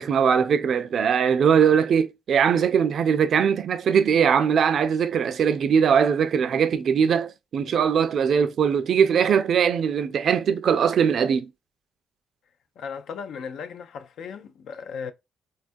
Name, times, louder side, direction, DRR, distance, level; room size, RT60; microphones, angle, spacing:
voice 1, 0.0-11.5, right 7 dB, 60° right, 0.3 m, -21 dB
voice 2, 12.8-15.1, left 6 dB, 75° left, 0.3 m, -36 dB
3.4 x 2.3 x 2.5 m
cardioid pair, 90°, 0 cm